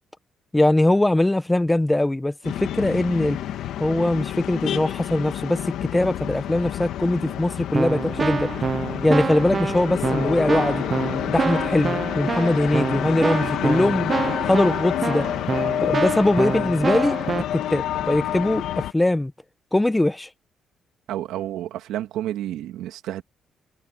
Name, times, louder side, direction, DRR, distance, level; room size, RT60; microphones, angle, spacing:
voice 1, 0.5-3.4 3.8-8.5 9.0-10.8 11.3-14.1 14.4-15.3 15.8-17.1 17.5-19.3 19.7-20.3, left 1 dB, 10° left, 1.3 m, -21 dB
sound 1, 2.4-18.9, left 11 dB, 80° left, 2.0 m, -28 dB
Keyboard (musical), 7.2-7.4 7.7-17.4, right 5 dB, 35° right, 0.8 m, -27 dB
voice 2, 21.1-23.2, right 13 dB, 90° right, 2.6 m, -30 dB
cardioid pair, 90°, 0 cm